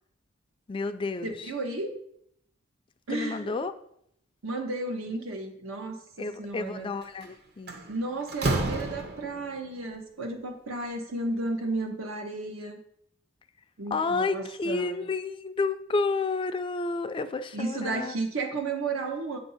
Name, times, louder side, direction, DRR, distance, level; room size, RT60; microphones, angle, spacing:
voice 1, 0.7-1.5 3.1-3.7 6.2-7.8 13.9-18.1, left 3 dB, 25° left, 9 dB, 0.3 m, -30 dB
voice 2, 1.2-1.9 3.1-3.6 4.4-6.9 7.9-12.8 13.8-15.1 17.5-19.4, right 2 dB, 85° right, 4 dB, 1.0 m, -33 dB
Slam, 7.0-7.3 7.7-9.5, right 2 dB, 50° right, 0.8 m, -30 dB
7.8 x 2.6 x 5.5 m, 0.71 s
head